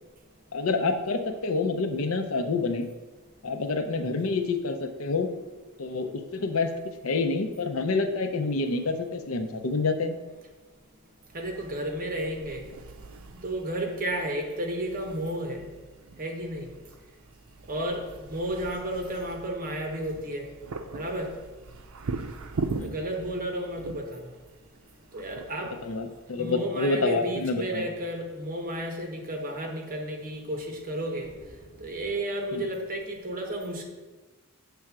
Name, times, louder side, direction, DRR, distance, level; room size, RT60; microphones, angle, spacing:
voice 1, 0.5-2.9 3.4-5.3 5.8-6.8 7.0-10.1 22.8-23.0 25.8-27.9 32.5-32.6, left 3 dB, 70° left, 7 dB, 0.6 m, -28 dB
voice 2, 11.3-12.6 13.4-15.6 16.2-16.7 17.7-20.4 20.9-21.3 22.8-24.2 25.1-25.7 26.4-31.3 31.8-33.8, right 1 dB, 40° right, 2 dB, 1.1 m, -32 dB
sound 1, 11.3-26.6, right 3 dB, 80° right, 0.5 m, -41 dB
7.5 x 3.4 x 6.0 m, 1.2 s
head